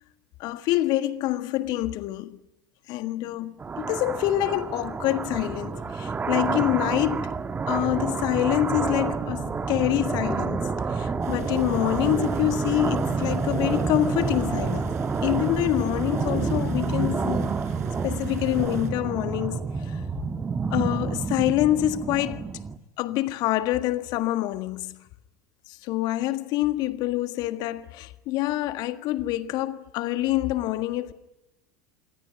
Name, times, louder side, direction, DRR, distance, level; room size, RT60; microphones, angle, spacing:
voice 1, 0.4-2.4 2.9-7.4 7.7-14.9 15.2-17.6 18.0-20.0 20.7-22.4 23.0-25.0 25.7-31.1, left 15 dB, 50° left, 1.6 m, -26 dB
sound 1, 3.6-22.8, right 5 dB, 20° right, 1.5 m, -28 dB
sound 2, 11.2-18.9, right 8 dB, 70° right, 4.3 m, -44 dB
27.5 x 22.0 x 9.9 m
figure-of-eight pair, 80°, 9 cm